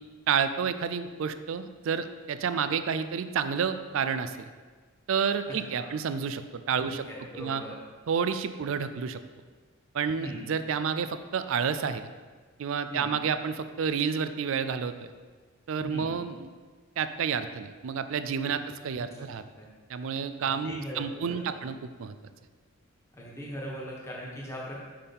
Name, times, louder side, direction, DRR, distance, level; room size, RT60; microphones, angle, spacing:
voice 1, 0.3-4.5 5.1-7.0 7.4-7.6 8.1-9.2 9.9-12.1 12.6-15.1 15.7-16.5 17.0-19.4 19.9-22.1, right 6 dB, 65° right, 11 dB, 0.4 m, -30 dB
voice 2, 5.5-5.9 6.8-7.7 10.2-10.4 12.9-13.1 15.8-16.1 19.0-19.3 19.6-19.7 20.4-21.4 23.1-24.8, equal, 10° left, -5 dB, 1.3 m, -40 dB
6.6 x 5.5 x 3.6 m, 1.4 s
head